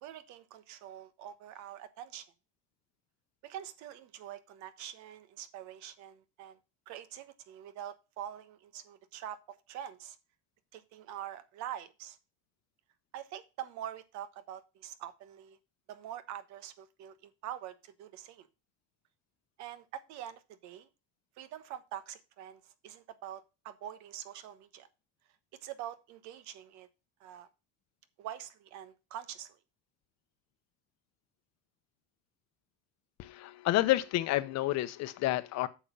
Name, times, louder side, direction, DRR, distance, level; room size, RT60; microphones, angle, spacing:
voice 1, 0.0-2.3 3.4-6.6 6.9-10.2 10.7-12.2 13.1-15.6 15.9-18.5 19.6-20.9 21.4-24.9 25.6-26.9 27.2-27.5 28.2-29.6, right 11 dB, 70° right, 1.2 m, -45 dB
voice 2, 33.2-35.7, left 16 dB, 60° left, 0.9 m, -29 dB
8.8 x 6.3 x 5.5 m
cardioid pair, 135°, 30 cm